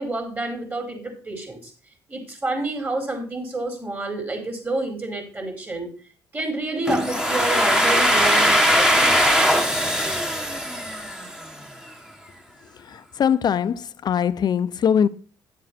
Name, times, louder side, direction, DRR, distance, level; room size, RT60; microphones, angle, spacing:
voice 1, 0.0-1.7 2.1-5.9 6.3-9.3, right 2 dB, 25° right, 4.6 m, -29 dB
Domestic sounds home sounds, 6.9-11.6, equal, 5° right, 1.8 m, -20 dB
voice 2, 12.9-15.1, left 8 dB, 50° left, 0.9 m, -22 dB
10.5 x 7.4 x 4.4 m
cardioid pair, 80°, 9 cm